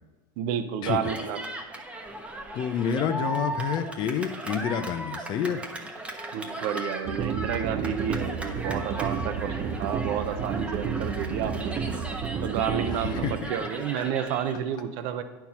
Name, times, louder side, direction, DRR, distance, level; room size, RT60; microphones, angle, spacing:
voice 1, 0.4-1.4 1.8-1.9 6.3-11.8 12.4-15.2, right 8 dB, 60° right, 9 dB, 0.8 m, -30 dB
Cheering, 0.9-14.5, right 1 dB, 10° right, 1.1 m, -37 dB
voice 2, 2.5-5.6 12.9-13.7, left 8 dB, 45° left, 8 dB, 0.7 m, -29 dB
sound 1, 7.0-13.4, right 6 dB, 30° right, 0.6 m, -31 dB
9.2 x 4.5 x 5.7 m, 1.2 s
supercardioid pair, 110°, 11 cm